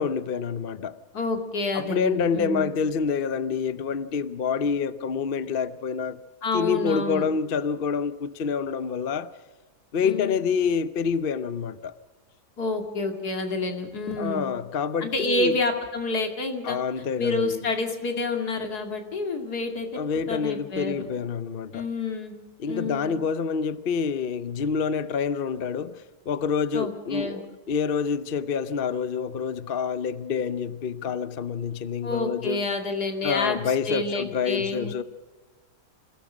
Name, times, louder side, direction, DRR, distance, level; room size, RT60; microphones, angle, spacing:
voice 1, 0.0-1.0 1.7-6.2 6.5-9.3 9.9-11.9 14.2-15.6 16.6-17.6 19.9-21.8 22.6-32.6 33.2-35.0, left 6 dB, 45° left, 0.8 m, -27 dB
voice 2, 1.1-2.7 6.4-7.3 10.0-10.5 12.6-14.5 15.0-16.8 17.2-20.0 20.3-21.1 21.7-23.2 26.7-27.4 32.0-35.0, left 2 dB, 75° left, 2.9 m, -29 dB
27.0 x 16.0 x 6.1 m
omnidirectional pair, 1.7 m